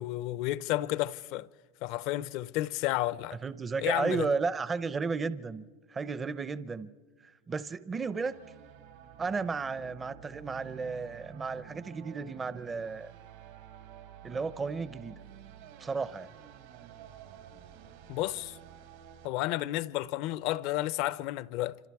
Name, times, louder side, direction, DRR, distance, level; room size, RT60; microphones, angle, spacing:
voice 1, 0.0-1.5 1.8-3.4 3.8-4.3 18.1-18.6 19.2-21.8, left 16 dB, 60° left, 0.6 m, -31 dB
voice 2, 3.4-6.9 7.2-8.4 9.2-13.1 14.2-15.2 15.8-16.3, right 4 dB, 20° right, 0.6 m, -33 dB
sound 1, 8.0-19.3, right 10 dB, 80° right, 3.0 m, -51 dB
27.0 x 26.0 x 4.7 m
supercardioid pair, 130°, 0 cm